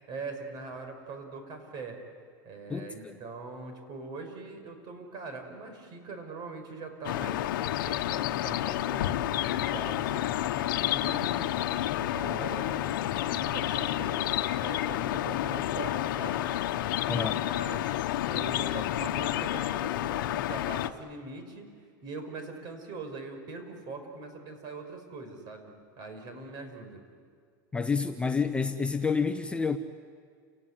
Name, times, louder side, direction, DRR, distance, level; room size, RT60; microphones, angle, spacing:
voice 1, 0.1-2.0 2.4-9.2 9.5-11.7 12.1-12.9 13.3-16.5 17.1-21.7 22.0-27.0, right 3 dB, 40° right, 6 dB, 5.3 m, -42 dB
voice 2, 2.7-3.2 17.1-17.4 27.7-29.8, left 5 dB, 10° left, 7 dB, 0.8 m, -29 dB
sound 1, 7.0-20.9, left 13 dB, 80° left, 1.0 m, -30 dB
29.5 x 18.0 x 9.9 m, 2.2 s
supercardioid pair, 135°, 11 cm